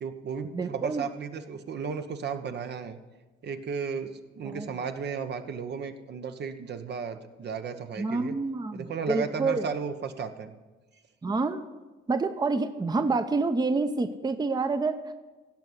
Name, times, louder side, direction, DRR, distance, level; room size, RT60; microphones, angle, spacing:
voice 1, 0.0-3.0 3.4-8.4 8.7-10.5, right 6 dB, 60° right, 8 dB, 1.0 m, -34 dB
voice 2, 0.5-1.0 4.4-4.7 8.0-9.7 11.2-11.7 12.1-15.1, right 3 dB, 20° right, 9 dB, 0.7 m, -28 dB
16.5 x 5.5 x 8.0 m, 1.2 s
cardioid pair, 90°, 20 cm